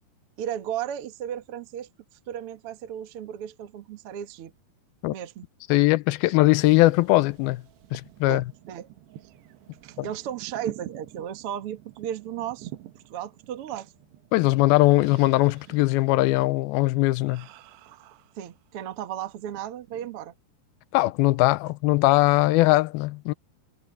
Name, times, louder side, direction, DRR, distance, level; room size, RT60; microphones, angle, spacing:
voice 1, 0.4-1.9 2.3-4.5 5.1-5.5 8.3-8.9 9.8-12.7 13.1-13.9 18.3-20.3, right 10 dB, 70° right, 1.3 m, -35 dB
voice 2, 5.7-7.6 7.9-8.4 10.0-10.1 14.3-17.5 20.9-23.3, left 20 dB, 80° left, 2.3 m, -20 dB
sound 1, 6.5-18.9 19.4-20.2, right 14 dB, 85° right, 3.3 m, -47 dB
omnidirectional pair, 4.7 m